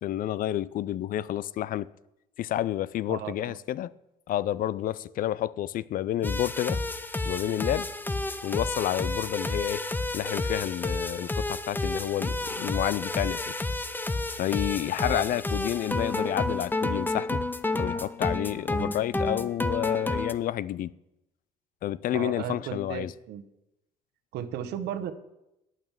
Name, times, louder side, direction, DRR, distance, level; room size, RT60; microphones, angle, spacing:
voice 1, 0.0-1.9 2.4-3.9 4.3-6.8 7.3-7.9 8.4-9.8 10.1-13.6 14.4-17.4 17.7-20.9 21.8-23.1, left 12 dB, 55° left, 0.4 m, -30 dB
voice 2, 3.1-3.6 15.0-15.4 18.7-18.9 22.1-23.4 24.3-25.1, right 9 dB, 80° right, 1.1 m, -35 dB
sound 1, 6.2-20.3, left 2 dB, 10° left, 0.7 m, -30 dB
9.1 x 9.0 x 7.3 m
cardioid pair, 110°, 17 cm